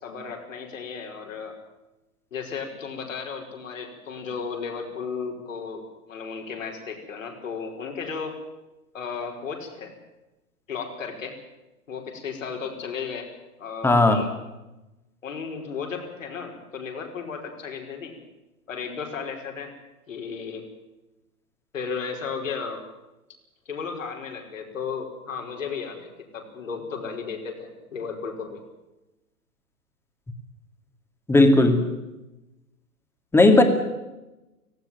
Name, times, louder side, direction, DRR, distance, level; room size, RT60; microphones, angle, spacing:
voice 1, 0.0-1.5 2.3-8.4 8.9-9.9 10.7-11.4 11.9-13.3 13.6-14.3 15.2-18.2 18.7-19.7 20.1-20.7 21.7-22.8 23.6-28.6, left 5 dB, 60° left, 3 dB, 5.2 m, -34 dB
voice 2, 13.8-14.2 31.3-31.9 33.3-33.6, left 2 dB, 5° left, 7 dB, 2.2 m, -16 dB
18.5 x 17.0 x 9.2 m, 1.0 s
figure-of-eight pair, 110°, 43 cm